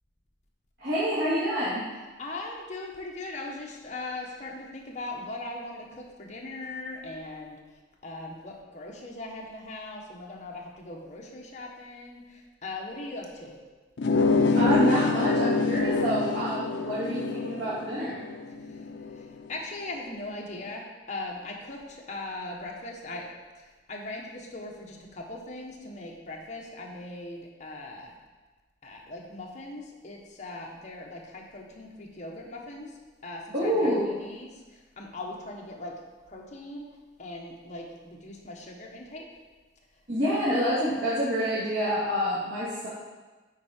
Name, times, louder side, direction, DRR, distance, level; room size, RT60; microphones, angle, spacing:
voice 1, 0.8-1.9 14.5-18.2 33.5-34.1 40.1-42.9, equal, 70° right, -11 dB, 2.3 m, -27 dB
voice 2, 2.2-13.6 18.6-23.3 23.6-28.2 28.8-36.0 36.3-39.3 40.3-40.4, left 2 dB, 45° left, -1 dB, 1.2 m, -40 dB
sound 1, 14.0-19.3, left 4 dB, 70° left, 0.4 m, -26 dB
8.4 x 4.7 x 4.4 m, 1.2 s
head